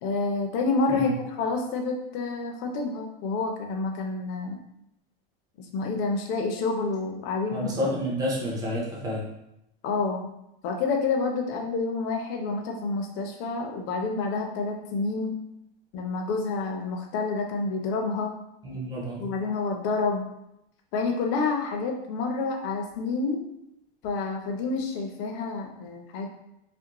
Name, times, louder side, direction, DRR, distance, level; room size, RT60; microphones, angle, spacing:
voice 1, 0.0-4.6 5.7-7.7 9.8-10.3 10.6-15.3 15.9-18.3 19.2-20.3 20.9-23.4 24.0-26.3, left 3 dB, 45° left, 2 dB, 0.5 m, -28 dB
voice 2, 7.5-9.3 18.6-19.3, equal, 15° right, -4 dB, 0.5 m, -30 dB
2.5 x 2.0 x 2.9 m, 0.84 s
supercardioid pair, 145°, 30 cm